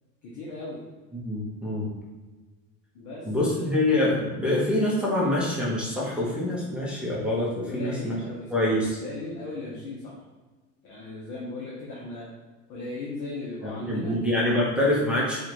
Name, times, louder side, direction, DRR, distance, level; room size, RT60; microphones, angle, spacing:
voice 1, 0.2-0.8 2.9-3.7 7.7-8.5 9.0-10.2 10.8-12.3 12.7-14.1, left 2 dB, 50° left, -5 dB, 0.9 m, -37 dB
voice 2, 1.1-1.9 3.3-8.1 8.5-9.0 13.6-15.4, left 1 dB, 5° right, -7 dB, 0.8 m, -25 dB
4.8 x 2.4 x 3.0 m, 1.3 s
supercardioid pair, 140°, 40 cm